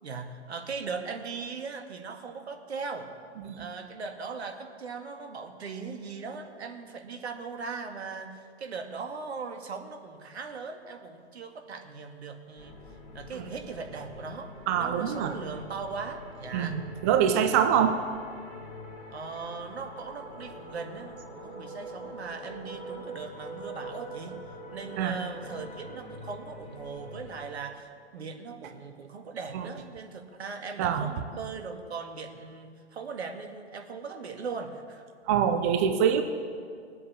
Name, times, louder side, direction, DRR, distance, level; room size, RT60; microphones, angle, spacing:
voice 1, 0.0-3.1 3.6-12.8 13.1-14.5 14.8-16.8 17.7-17.9 19.1-24.4 24.7-35.1, right 5 dB, 70° right, 5 dB, 2.0 m, -39 dB
sound 1, 12.6-27.5, right 1 dB, 20° left, 4.5 m, -44 dB
voice 2, 14.7-15.3 16.5-18.0 25.0-25.2 29.5-29.7 30.8-31.1 35.3-36.2, right 8 dB, 15° right, 8 dB, 0.3 m, -25 dB
20.0 x 8.4 x 7.2 m, 2.1 s
figure-of-eight pair, 125°, 34 cm